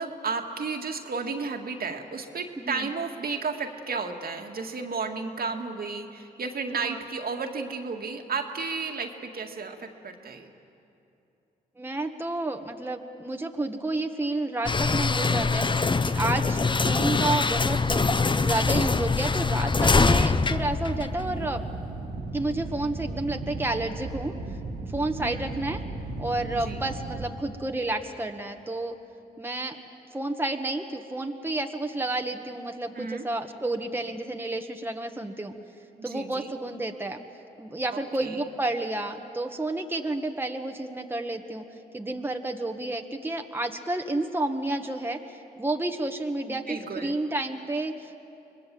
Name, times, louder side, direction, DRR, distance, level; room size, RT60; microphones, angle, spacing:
voice 1, 0.0-10.5 21.0-21.2 25.2-25.5 26.5-26.8 32.9-33.3 36.0-36.5 37.9-38.5 46.5-47.2, right 4 dB, 60° right, 3 dB, 2.0 m, -33 dB
voice 2, 2.6-2.9 6.7-7.0 11.8-15.7 16.0-18.0 18.4-21.6 22.3-24.3 24.9-25.8 26.2-29.0 29.4-29.8 30.1-35.5 36.0-37.2 37.6-41.6 41.9-48.2, right 2 dB, 10° right, 4 dB, 1.5 m, -30 dB
sound 1, 14.7-21.6, left 4 dB, 25° left, 0.8 m, -24 dB
sound 2, 19.9-27.3, right 2 dB, 80° right, 2.1 m, -36 dB
25.5 x 20.0 x 7.7 m, 2.7 s
supercardioid pair, 55°, 18 cm